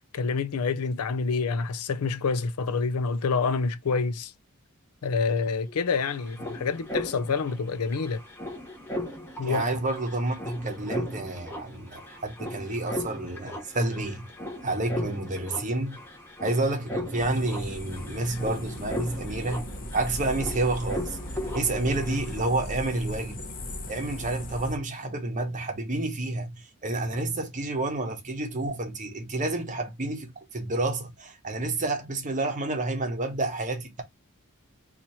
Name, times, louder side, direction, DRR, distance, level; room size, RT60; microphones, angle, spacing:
voice 1, 0.1-4.3 5.0-8.2 9.4-9.6, left 4 dB, 75° left, 0.5 m, -27 dB
sound 1, 5.4-5.5 5.6-22.4, left 1 dB, 10° left, 1.0 m, -38 dB
voice 2, 9.5-14.2 14.6-16.0 16.4-21.2 21.5-23.4 23.9-34.0, right 2 dB, 35° right, 0.9 m, -29 dB
sound 2, 17.1-24.8, left 1 dB, 40° left, 0.8 m, -38 dB
2.9 x 2.5 x 4.1 m
head